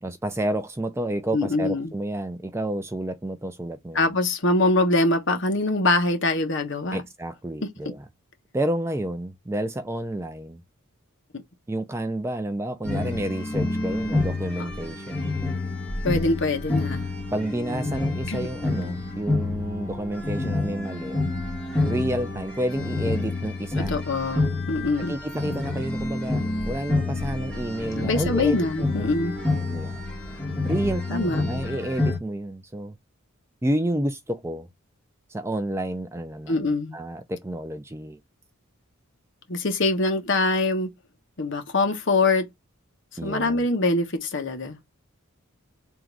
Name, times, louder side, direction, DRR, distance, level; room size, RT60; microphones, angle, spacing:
voice 1, 0.0-4.1 6.9-8.1 8.5-10.6 11.7-15.2 17.3-21.2 21.8-23.9 25.1-29.1 29.7-30.0 30.6-32.9 33.6-34.7 35.3-38.2 43.2-43.7, right 1 dB, 10° right, 0.4 m, -30 dB
voice 2, 1.3-1.9 3.9-7.0 11.3-11.4 16.0-17.1 18.3-18.5 23.9-25.1 28.0-29.4 31.1-31.4 36.5-37.0 39.5-40.9 41.4-42.4 43.2-44.8, left 2 dB, 55° left, 1.0 m, -23 dB
sound 1, 12.8-32.2, left 2 dB, 5° left, 1.3 m, -28 dB
3.7 x 2.5 x 4.6 m
head